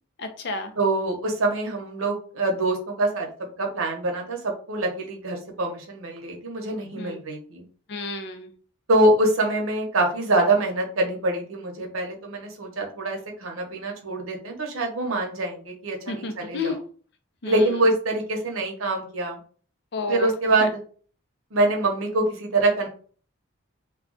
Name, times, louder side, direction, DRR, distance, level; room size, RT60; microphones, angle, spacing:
voice 1, 0.2-0.7 7.0-7.2 7.9-8.5 16.1-16.8 17.4-17.5 19.9-20.3 20.6-20.7, left 3 dB, 55° left, 6 dB, 0.5 m, -31 dB
voice 2, 0.8-3.3 3.6-7.6 8.9-16.8 17.4-19.4 20.1-20.8 21.5-22.9, right 2 dB, 90° right, 1 dB, 0.8 m, -24 dB
2.3 x 2.3 x 3.7 m, 0.43 s
head